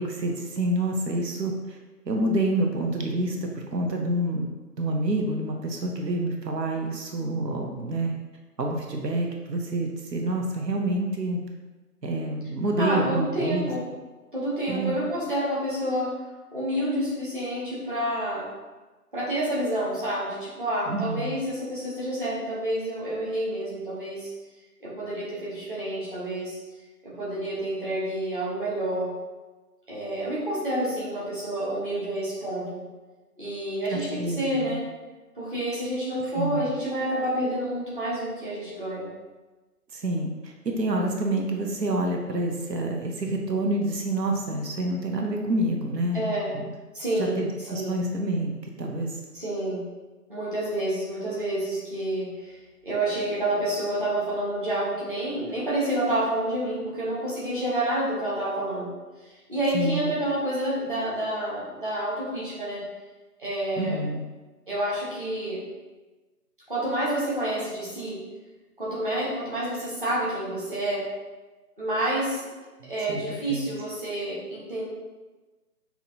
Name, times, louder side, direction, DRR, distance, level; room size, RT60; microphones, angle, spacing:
voice 1, 0.0-1.8 2.1-4.5 4.8-8.1 8.6-11.4 12.0-13.7 14.7-15.0 20.9-21.4 33.9-34.8 36.3-36.6 39.9-46.7 47.2-48.5 48.8-49.2 59.7-60.1 63.8-64.2 72.8-73.2 73.5-73.7, right 1 dB, 85° right, 1 dB, 0.8 m, -28 dB
voice 2, 12.8-13.8 14.3-16.1 16.5-18.5 19.1-24.3 24.8-26.6 27.0-29.1 29.9-32.8 33.4-34.8 35.3-39.1 46.1-46.5 46.9-48.0 49.3-49.8 50.3-52.6 52.8-58.9 59.2-62.8 63.4-64.0 64.7-65.6 66.7-68.2 68.8-71.0 71.8-72.5 72.9-74.8, right 1 dB, 30° right, -9 dB, 1.2 m, -29 dB
5.8 x 2.9 x 2.7 m, 1.2 s
figure-of-eight pair, 170°, 48 cm